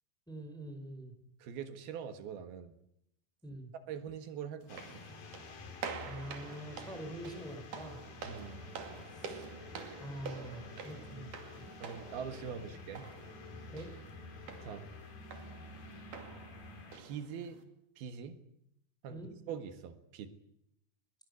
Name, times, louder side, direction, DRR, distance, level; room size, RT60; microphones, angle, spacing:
voice 1, 0.3-1.1 3.4-3.7 6.0-8.0 9.2-9.3 10.0-11.3 13.7-13.9 19.1-19.3, right 1 dB, ahead, 5 dB, 4.6 m, -45 dB
voice 2, 1.4-2.7 3.9-4.8 8.2-8.6 11.8-13.1 14.6-14.9 17.0-17.6 18.0-18.4 19.0-20.3, right 7 dB, 80° right, 9 dB, 3.5 m, -43 dB
sound 1, 4.6-17.6, right 6 dB, 60° right, 3.9 m, -48 dB
sound 2, 4.7-17.0, left 3 dB, 70° left, 5.0 m, -50 dB
21.5 x 21.0 x 8.2 m, 0.75 s
omnidirectional pair, 4.3 m